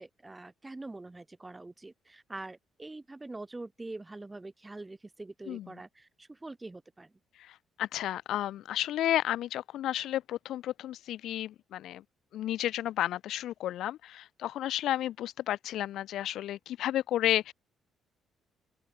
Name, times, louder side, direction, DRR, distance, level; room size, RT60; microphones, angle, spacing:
voice 1, 0.0-7.1, right 2 dB, 15° right, 7.6 m, -44 dB
voice 2, 7.3-12.0 12.3-17.5, left 12 dB, 75° left, 3.4 m, -32 dB
open air
cardioid pair, 105°, 0 cm